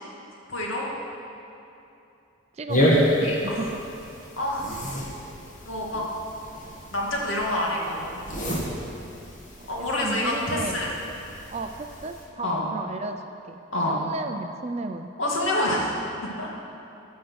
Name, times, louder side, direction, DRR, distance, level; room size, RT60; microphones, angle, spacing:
voice 1, 0.5-0.9 2.8-2.9 3.2-3.7 4.4-4.7 5.6-6.0 6.9-8.2 9.7-10.9 12.4-12.7 13.7-14.0 15.2-15.9 16.2-16.5, left 1 dB, 75° left, -3 dB, 2.2 m, -27 dB
voice 2, 2.5-2.9 3.2-3.8 9.6-10.8 11.5-13.6 13.9-15.1, right 3 dB, 30° right, 7 dB, 0.4 m, -34 dB
sound 1, 2.7-12.2, equal, 40° left, 1.8 m, -29 dB
15.0 x 6.4 x 6.1 m, 2.8 s
head